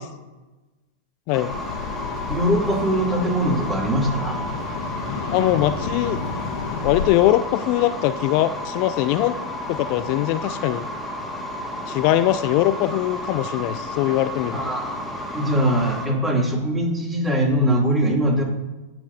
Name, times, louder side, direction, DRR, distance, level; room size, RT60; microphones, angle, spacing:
sound 1, 1.3-16.1, left 1 dB, 5° left, 2.0 m, -32 dB
sound 2, 1.5-7.1, left 5 dB, 65° left, 1.3 m, -32 dB
voice 1, 2.3-4.4 14.5-15.0 15.3-18.4, equal, 10° right, -1 dB, 2.8 m, -21 dB
voice 2, 5.3-6.2 6.8-9.4 9.7-10.9 11.9-14.6, left 14 dB, 50° left, 12 dB, 0.4 m, -21 dB
18.0 x 6.0 x 2.8 m, 1.1 s
figure-of-eight pair, 95°, 0 cm